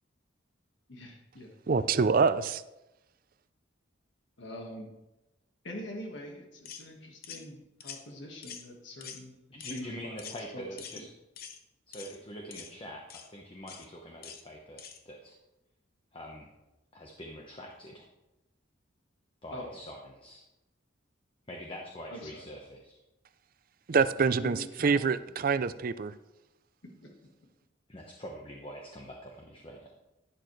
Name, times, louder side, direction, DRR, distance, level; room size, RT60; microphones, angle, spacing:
voice 1, 0.9-1.8 4.4-4.9 5.6-9.3 9.7-10.6 10.9-11.1 19.5-19.8 22.1-22.5 24.1-25.2 27.0-27.1, left 1 dB, 65° left, 1 dB, 1.7 m, -44 dB
voice 2, 1.7-2.6 23.9-26.1, right 5 dB, 45° right, 14 dB, 0.4 m, -26 dB
sound 1, 6.7-6.9 7.2-7.4 7.8-8.0 8.4-8.7 9.0-9.2 9.6-9.8 10.2-10.4 10.8-11.0 11.4-11.6 11.9-12.2 12.5-12.7 13.1-13.3 13.7-13.9 14.2-14.4 14.8-15.0, left 7 dB, 50° left, 0.9 m, -45 dB
voice 3, 9.5-11.1 11.9-15.4 16.1-16.5 16.9-18.1 19.4-20.4 21.5-23.0 27.9-29.9, equal, 25° left, 1 dB, 1.1 m, -44 dB
11.5 x 10.5 x 3.2 m, 0.97 s
head